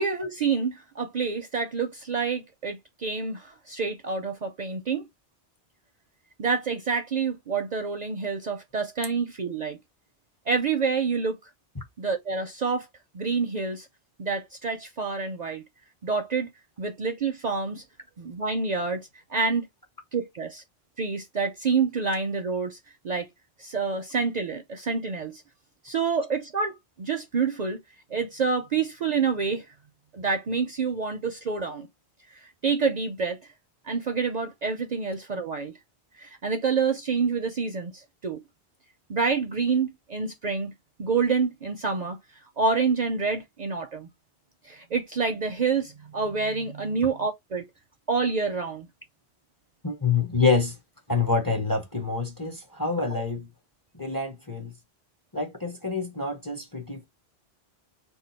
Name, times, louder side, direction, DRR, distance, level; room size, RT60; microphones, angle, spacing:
voice 1, 0.0-5.1 6.4-9.8 10.5-11.4 12.0-12.9 13.1-13.9 14.2-15.6 16.0-16.5 16.8-17.8 18.2-19.6 20.1-20.6 21.0-22.8 23.0-23.3 23.6-25.4 25.8-27.8 28.1-29.6 30.1-31.9 32.6-33.4 33.8-35.7 36.2-38.4 39.1-40.7 41.0-42.2 42.6-44.1 44.6-47.7 48.1-48.9 53.1-53.2, right 5 dB, 55° right, 0.5 m, -27 dB
voice 2, 49.8-50.7 51.1-53.5 53.9-54.7 55.3-57.0, left 4 dB, 25° left, 0.6 m, -26 dB
2.8 x 2.3 x 3.9 m
omnidirectional pair, 1.1 m